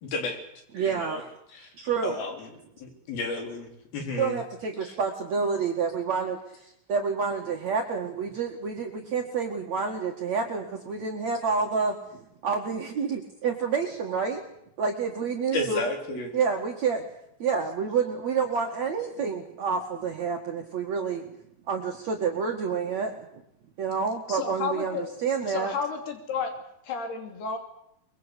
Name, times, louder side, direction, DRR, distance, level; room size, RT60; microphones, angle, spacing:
voice 1, 0.0-0.4 0.9-1.2 1.5-1.7 2.0-2.3 2.8-4.4 15.5-16.3, left 3 dB, 70° left, 4 dB, 5.4 m, -32 dB
voice 2, 0.7-1.3 1.8-2.2 4.2-12.0 12.4-14.4 14.8-15.8 16.3-17.1 17.4-21.4 21.7-23.1 23.8-25.7, right 5 dB, 50° right, 1 dB, 2.9 m, -28 dB
voice 3, 24.3-25.0 25.5-26.5 26.8-27.6, left 5 dB, 90° left, 5 dB, 5.0 m, -31 dB
24.0 x 22.5 x 8.3 m, 0.76 s
omnidirectional pair, 4.4 m